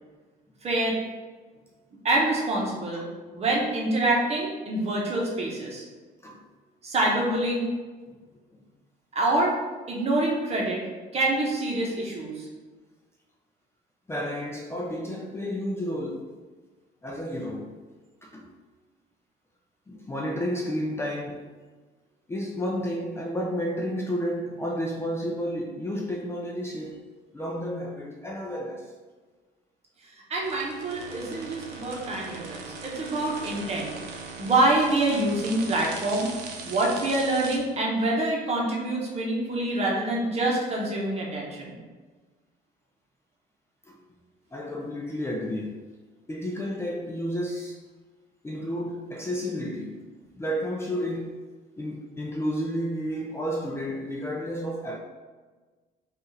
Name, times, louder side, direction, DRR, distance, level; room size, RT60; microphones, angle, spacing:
voice 1, 0.6-1.0 2.0-3.1 3.3-5.8 6.8-7.7 9.1-9.6 9.9-10.8 11.1-12.5 30.3-33.9 34.4-36.3 36.6-41.8, right 2 dB, 40° right, 1.1 m, -26 dB
voice 2, 14.1-16.3 17.0-17.8 18.2-18.5 19.9-21.4 22.3-27.0 27.3-28.9 43.9-44.0 44.5-45.9 46.3-47.8 48.4-50.1 50.4-51.4 51.8-55.0, equal, 15° left, 0.5 m, -31 dB
sound 1, 30.4-37.6, right 4 dB, 80° right, 0.7 m, -40 dB
5.1 x 2.5 x 3.2 m
cardioid pair, 110°, 17 cm